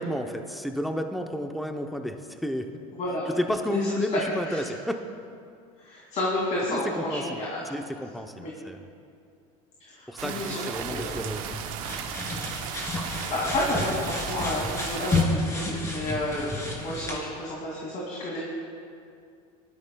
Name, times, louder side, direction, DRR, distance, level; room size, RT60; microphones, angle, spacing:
voice 1, 0.0-2.7 3.4-5.0 6.7-7.4 7.7-8.8 10.1-11.6 11.9-12.1, equal, ahead, 5 dB, 0.7 m, -32 dB
voice 2, 3.0-3.3 3.7-4.2 4.5-4.7 5.8-7.6 8.4-8.5 9.8-11.2 13.1-18.4, left 1 dB, 45° left, -4 dB, 2.5 m, -31 dB
sound 1, 10.2-15.2, right 10 dB, 75° right, 0.9 m, -36 dB
sound 2, 10.7-17.2, left 2 dB, 15° left, 2.8 m, -31 dB
19.5 x 13.5 x 2.3 m, 2.4 s
supercardioid pair, 110°, 18 cm